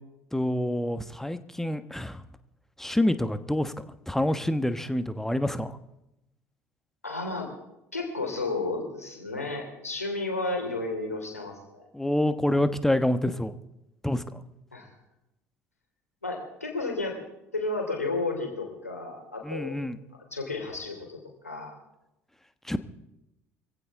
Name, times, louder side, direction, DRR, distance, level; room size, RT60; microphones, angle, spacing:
voice 1, 0.3-2.2 2.8-3.7 4.1-5.8 11.9-13.5 14.0-14.4 19.4-20.0 22.6-22.8, left 1 dB, 5° left, 11 dB, 1.2 m, -27 dB
voice 2, 7.0-7.5 7.9-11.9 14.7-14.9 16.2-17.2 17.5-19.8 20.3-21.7, left 3 dB, 90° left, 2 dB, 3.3 m, -32 dB
24.0 x 16.0 x 3.7 m, 0.88 s
figure-of-eight pair, 60°, 8 cm